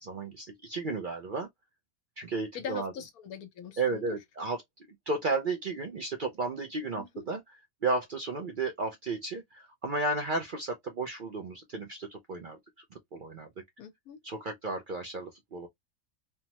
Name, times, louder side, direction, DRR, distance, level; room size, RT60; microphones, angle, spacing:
voice 1, 0.0-1.5 2.2-2.9 3.8-4.6 5.1-7.4 7.8-12.6 13.1-13.5 14.2-15.7, right 3 dB, 60° right, 0.5 m, -33 dB
voice 2, 2.5-4.2 7.0-7.2 13.8-14.2, left 8 dB, 85° left, 1.2 m, -42 dB
3.3 x 2.0 x 2.8 m
omnidirectional pair, 1.5 m